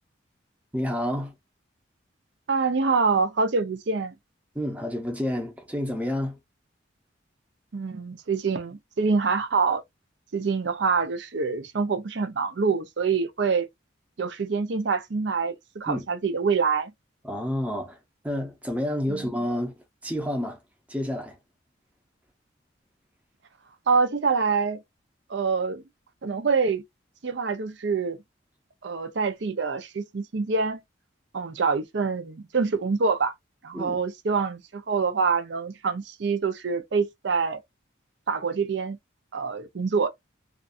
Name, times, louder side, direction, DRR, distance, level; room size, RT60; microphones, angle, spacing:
voice 1, 0.7-1.3 4.5-6.4 15.9-16.1 17.2-18.0 18.2-19.7 20.0-20.6 20.9-21.4 33.7-34.0, equal, 5° right, 0.7 m, -29 dB
voice 2, 2.5-4.1 7.7-9.8 10.3-13.7 14.2-16.9 19.1-19.2 23.9-24.8 25.3-25.8 26.2-26.8 27.2-28.2 28.8-30.8 31.3-33.3 33.6-37.6 38.3-39.0 39.3-40.1, right 5 dB, 60° right, 0.5 m, -25 dB
2.5 x 2.3 x 2.5 m
head